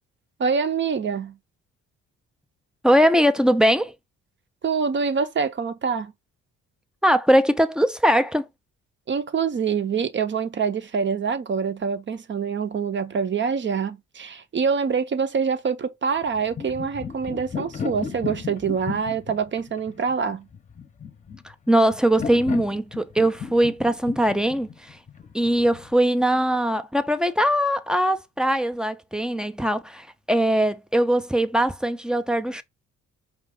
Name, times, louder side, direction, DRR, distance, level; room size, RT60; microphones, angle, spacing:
voice 1, 0.4-1.4 4.6-6.1 9.1-20.5, right 6 dB, 40° right, 0.7 m, -25 dB
voice 2, 2.8-3.9 7.0-8.5 21.4-25.0 25.3-32.6, equal, 5° right, 0.5 m, -21 dB
sound 1, 16.2-25.9, left 6 dB, 25° left, 0.8 m, -35 dB
4.9 x 2.4 x 3.7 m
cardioid pair, 90°, 30 cm